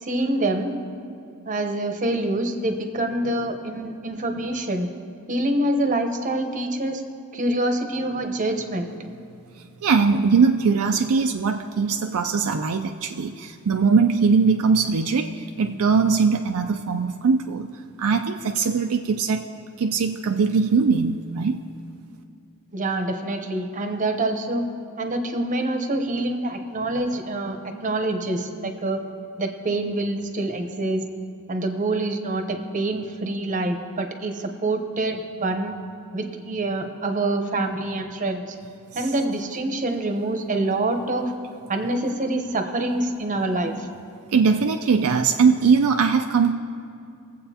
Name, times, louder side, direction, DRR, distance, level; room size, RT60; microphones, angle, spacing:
voice 1, 0.0-0.7 1.5-4.9 5.3-7.0 7.3-8.9 22.7-24.7 25.0-29.0 29.4-31.1 31.5-35.7 36.1-38.5 38.9-41.3 41.7-43.9, right 2 dB, 35° right, 5 dB, 0.9 m, -26 dB
voice 2, 9.8-17.7 18.0-19.4 19.8-21.6 44.3-46.5, right 5 dB, 70° right, 5 dB, 0.4 m, -21 dB
21.5 x 7.8 x 2.8 m, 2.5 s
head